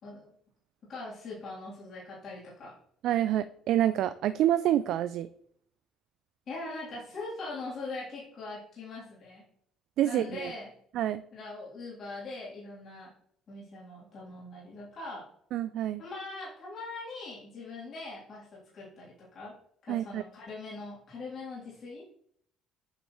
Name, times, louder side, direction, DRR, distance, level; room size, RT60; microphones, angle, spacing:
voice 1, 0.0-0.3 0.8-2.7 6.5-9.5 10.0-10.7 11.3-13.1 13.5-15.3 16.0-19.5 19.9-22.2, left 3 dB, 55° left, -7 dB, 3.3 m, -41 dB
voice 2, 3.0-5.3 10.0-10.5 10.9-11.2 15.5-16.0 19.9-20.2, right 12 dB, 70° right, 13 dB, 0.3 m, -27 dB
8.9 x 5.3 x 3.2 m, 0.66 s
supercardioid pair, 75°, 0 cm